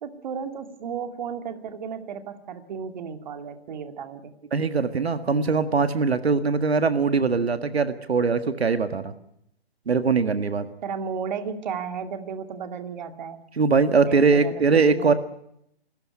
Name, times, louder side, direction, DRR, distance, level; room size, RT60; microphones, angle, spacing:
voice 1, 0.0-4.3 10.8-13.5 14.0-15.1, right 6 dB, 45° right, 7 dB, 2.4 m, -34 dB
voice 2, 4.5-9.1 9.9-10.7 13.6-15.1, right 4 dB, 85° right, 9 dB, 1.8 m, -21 dB
27.0 x 14.0 x 9.8 m, 0.77 s
hypercardioid pair, 150°, 31 cm